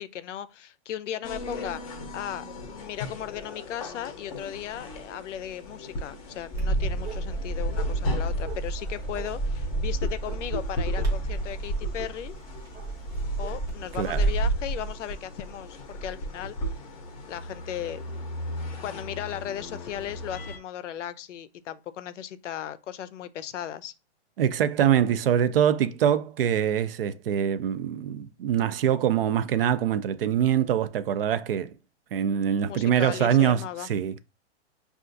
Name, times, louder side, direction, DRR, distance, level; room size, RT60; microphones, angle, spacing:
voice 1, 0.0-12.3 13.4-16.8 17.3-18.1 18.8-23.9 32.7-33.9, left 10 dB, 90° left, 0.5 m, -36 dB
sound 1, 1.2-20.6, equal, 30° left, 0.6 m, -35 dB
Bark, 6.5-14.5, right 2 dB, 10° right, 0.6 m, -30 dB
voice 2, 24.4-31.7 32.1-34.2, right 9 dB, 55° right, 0.4 m, -24 dB
5.5 x 2.4 x 2.5 m
hypercardioid pair, 160°, 35 cm